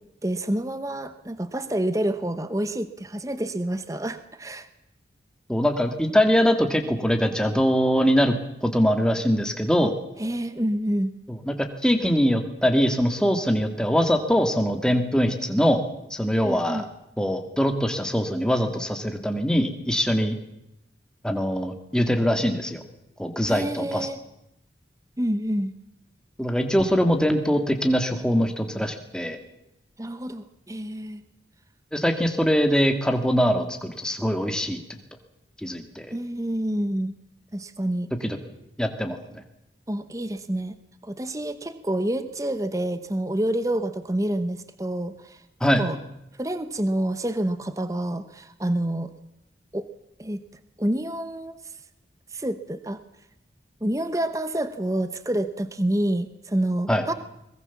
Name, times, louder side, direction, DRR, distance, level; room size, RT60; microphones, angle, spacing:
voice 1, 0.2-4.7 9.8-9.9 10.2-11.1 16.4-16.8 23.5-24.2 25.2-25.7 30.0-31.2 36.1-37.1 37.5-38.1 39.9-40.8 41.0-46.0 46.4-49.1 49.7-49.9 50.2-50.4 50.8-51.6 52.3-53.0 53.8-57.1, right 1 dB, 20° right, 11 dB, 0.9 m, -28 dB
voice 2, 5.5-8.4 8.6-9.9 11.3-15.8 16.1-16.9 17.2-20.4 21.2-22.8 23.2-24.1 26.4-29.4 31.9-34.8 35.6-36.1 38.2-38.4 38.8-39.4 45.6-45.8 56.9-57.0, equal, 5° left, 6 dB, 1.9 m, -22 dB
22.0 x 20.5 x 7.2 m, 0.85 s
head